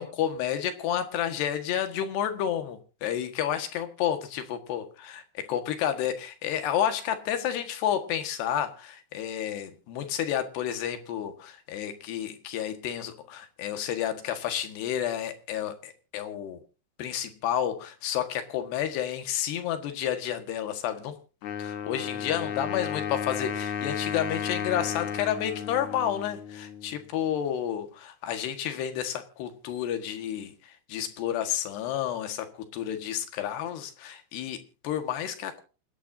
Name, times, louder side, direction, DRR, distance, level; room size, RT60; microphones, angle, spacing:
voice 1, 0.0-16.6 17.0-21.2 21.6-35.6, left 10 dB, 90° left, 8 dB, 3.8 m, -31 dB
Wind instrument woodwind instrument, 21.4-27.1, left 7 dB, 60° left, 2.2 m, -34 dB
27.5 x 10.5 x 2.7 m, 0.33 s
omnidirectional pair, 4.6 m